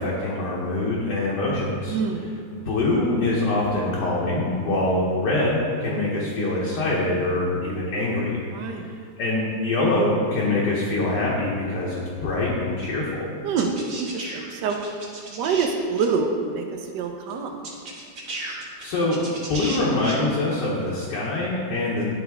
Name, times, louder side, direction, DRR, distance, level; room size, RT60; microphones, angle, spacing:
voice 1, 0.0-2.0 2.7-8.4 8.8-8.9 9.2-13.3 18.8-19.2 19.5-22.0, left 2 dB, 70° left, -5 dB, 1.5 m, -24 dB
voice 2, 1.9-2.3 8.5-8.9 13.4-14.8 15.3-16.6 16.9-17.5, right 5 dB, 75° right, 4 dB, 1.3 m, -26 dB
sound 1, 13.6-15.7 15.9-16.1 17.3-17.4 17.6-20.1, right 2 dB, 50° right, 1.5 m, -35 dB
10.5 x 4.0 x 3.4 m, 2.2 s
omnidirectional pair, 1.9 m